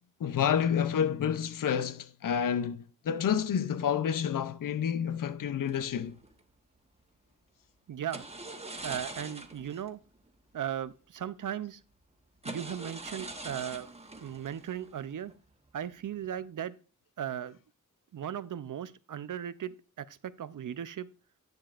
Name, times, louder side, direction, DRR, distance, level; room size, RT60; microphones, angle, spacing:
voice 1, 0.2-6.1, left 8 dB, 90° left, 0.6 m, -29 dB
sound 1, 5.6-6.4 8.1-9.9 10.1-10.3 10.7-10.8 11.6-11.7 12.4-15.5 15.9-16.2, right 2 dB, 20° right, 1.2 m, -43 dB
voice 2, 7.9-8.2 8.8-10.0 10.5-11.8 12.4-13.9 14.2-15.3 15.7-16.7 17.2-17.6 18.1-21.1, right 10 dB, 75° right, 0.6 m, -37 dB
10.5 x 8.4 x 2.5 m
wide cardioid pair, 90°, 32 cm